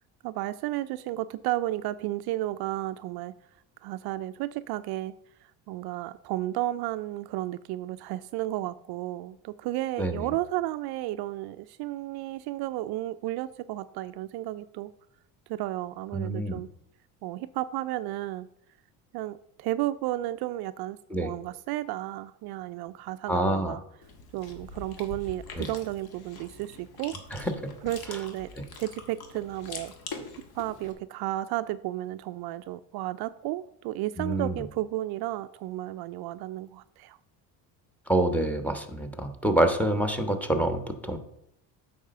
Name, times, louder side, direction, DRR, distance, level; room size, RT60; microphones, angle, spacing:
voice 1, 0.2-3.3 3.8-5.1 5.7-14.9 15.5-16.7 17.2-18.5 19.1-23.8 24.3-27.1 27.8-29.9 30.5-37.2, right 15 dB, 60° right, 12 dB, 0.5 m, -33 dB
voice 2, 10.0-10.3 16.1-16.6 21.1-21.3 23.3-23.7 25.5-25.7 27.3-27.5 34.2-34.6 38.1-41.2, right 1 dB, 5° left, 7 dB, 1.2 m, -27 dB
Chewing mastication, 24.0-30.9, left 4 dB, 60° left, 1.7 m, -44 dB
8.5 x 4.3 x 6.6 m, 0.76 s
supercardioid pair, 90°, 43 cm